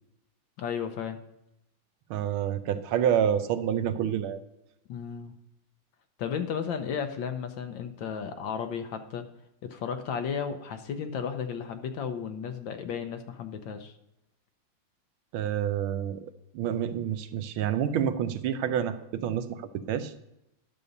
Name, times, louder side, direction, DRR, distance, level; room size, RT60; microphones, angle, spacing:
voice 1, 0.6-1.2 4.9-5.3 6.2-9.3 9.6-13.9, left 7 dB, 70° left, 8 dB, 1.4 m, -34 dB
voice 2, 2.1-4.4 15.3-20.1, right 9 dB, 80° right, 11 dB, 1.5 m, -28 dB
11.0 x 6.7 x 5.2 m, 0.86 s
omnidirectional pair, 2.3 m